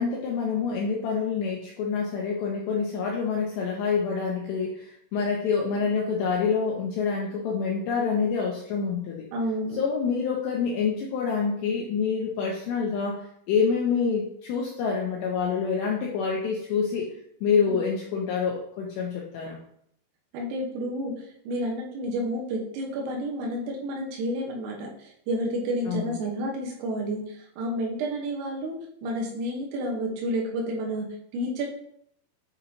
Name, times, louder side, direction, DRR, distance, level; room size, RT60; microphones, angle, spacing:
voice 1, 0.0-9.3 9.8-17.1 17.4-19.6 25.9-26.1, left 5 dB, 80° left, -2 dB, 2.5 m, -27 dB
voice 2, 9.3-9.8 17.7-17.8 20.3-24.9 25.3-31.6, equal, 80° right, -1 dB, 3.8 m, -30 dB
9.1 x 4.0 x 2.8 m, 0.69 s
omnidirectional pair, 5.9 m